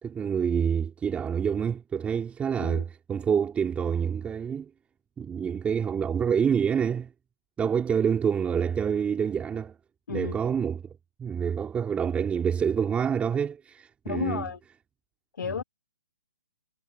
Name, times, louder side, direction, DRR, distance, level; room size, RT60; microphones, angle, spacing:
voice 1, 0.0-4.7 5.2-7.1 7.6-9.7 10.1-10.8 11.2-14.4, right 7 dB, 15° right, 2.2 m, -27 dB
voice 2, 14.0-14.6 15.3-15.6, left 6 dB, 75° left, 1.3 m, -32 dB
hypercardioid pair, 135°, 10 cm